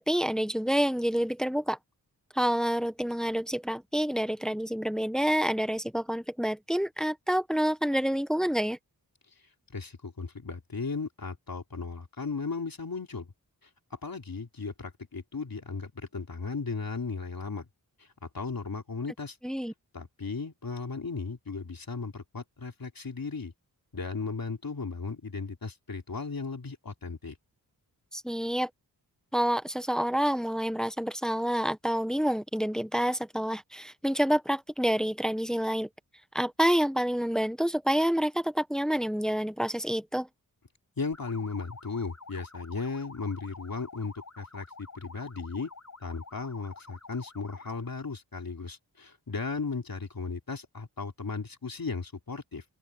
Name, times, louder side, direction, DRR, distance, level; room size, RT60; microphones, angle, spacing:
voice 1, 0.1-1.8 2.3-8.8 19.4-19.7 28.1-28.7 29.3-35.9 36.3-40.3, equal, ahead, 1.4 m, -28 dB
voice 2, 9.7-13.3 13.9-17.7 18.0-18.1 18.3-19.4 19.9-23.5 23.9-27.3 41.0-45.7 46.0-52.6, left 4 dB, 60° left, 3.6 m, -36 dB
sound 1, 41.1-47.9, left 3 dB, 45° left, 7.3 m, -48 dB
open air
cardioid pair, 45°, 40 cm